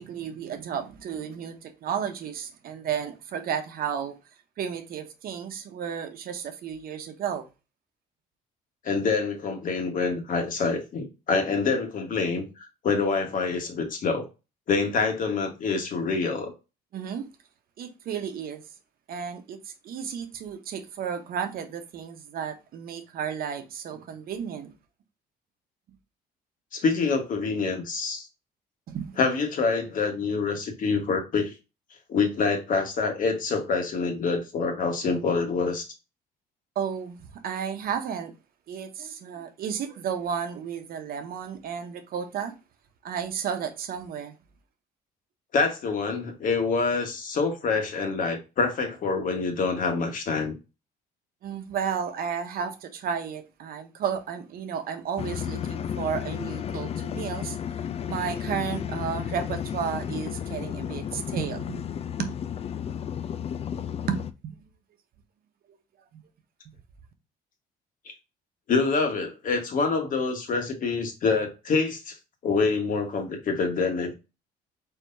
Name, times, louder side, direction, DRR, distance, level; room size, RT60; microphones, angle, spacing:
voice 1, 0.0-4.2 4.6-7.5 16.9-17.3 17.8-18.6 19.1-24.7 28.9-29.2 36.7-38.3 38.7-42.5 43.0-44.3 51.4-57.6 58.1-61.8 62.2-62.3 64.1-64.5 66.1-66.2, right 7 dB, 60° right, 1.0 m, -33 dB
voice 2, 8.8-14.3 14.7-16.5 26.7-28.3 29.2-31.5 32.1-35.8 45.5-50.5 68.7-72.1 72.4-74.1, left 4 dB, 55° left, 1.5 m, -26 dB
sound 1, 55.2-64.3, left 9 dB, 35° left, 0.4 m, -33 dB
4.7 x 4.0 x 2.7 m
cardioid pair, 110°, 17 cm